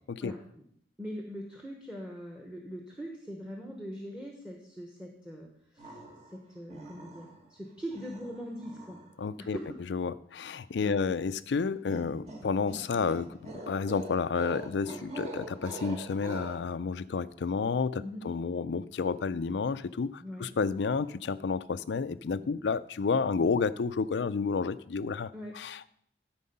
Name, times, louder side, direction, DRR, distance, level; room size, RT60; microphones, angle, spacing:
voice 1, 0.2-0.6 1.0-6.0 6.3-9.0 9.4-9.8 10.8-11.0 18.0-18.2 20.2-20.5 25.3-25.5, equal, 5° right, 1 dB, 1.1 m, -42 dB
sound 1, 5.8-6.4 6.7-7.5 7.9-9.1 11.9-16.5, right 2 dB, 40° right, 1.7 m, -44 dB
voice 2, 9.2-9.6 9.9-25.9, left 5 dB, 70° left, 15 dB, 0.4 m, -31 dB
13.0 x 4.7 x 5.4 m, 0.67 s
head